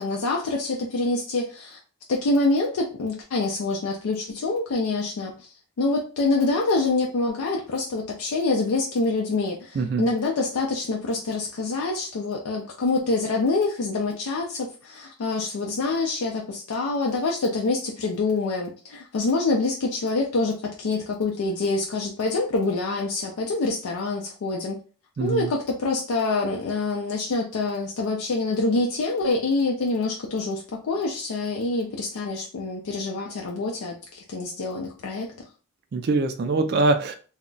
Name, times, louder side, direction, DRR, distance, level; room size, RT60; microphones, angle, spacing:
voice 1, 0.0-1.8 2.1-5.5 5.8-24.8 25.2-35.3, left 3 dB, 80° left, 0 dB, 0.4 m, -26 dB
voice 2, 9.7-10.1 25.2-25.5 35.9-37.1, right 3 dB, 45° right, 7 dB, 0.3 m, -23 dB
2.2 x 2.0 x 3.8 m, 0.38 s
head